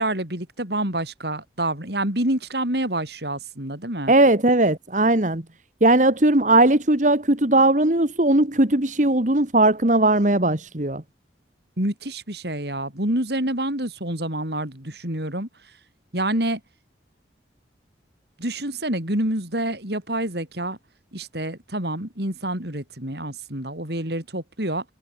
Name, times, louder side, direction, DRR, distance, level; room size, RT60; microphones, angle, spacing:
voice 1, 0.0-4.1 11.8-15.5 16.1-16.6 18.4-20.8 21.1-24.8, right 1 dB, 65° right, 5.8 m, -27 dB
voice 2, 4.1-5.4 5.8-11.0, right 2 dB, 40° right, 1.9 m, -18 dB
head